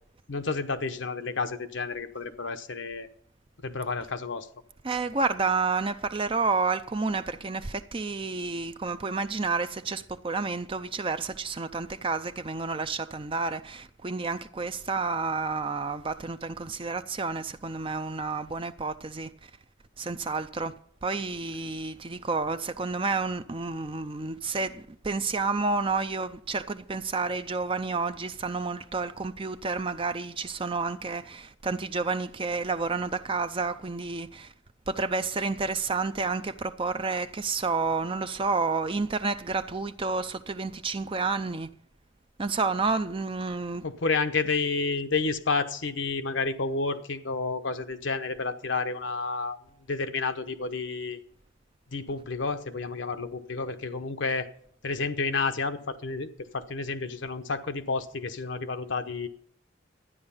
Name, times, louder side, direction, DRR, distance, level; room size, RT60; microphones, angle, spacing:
voice 1, 0.3-3.1 3.6-4.5 43.8-49.6 49.9-51.2 51.9-54.5 54.8-59.3, left 4 dB, 65° left, 0.9 m, -30 dB
voice 2, 4.8-19.3 20.0-20.7 21.0-34.5 34.9-41.7 42.4-43.8, right 4 dB, 25° right, 0.5 m, -30 dB
12.5 x 9.7 x 5.6 m
head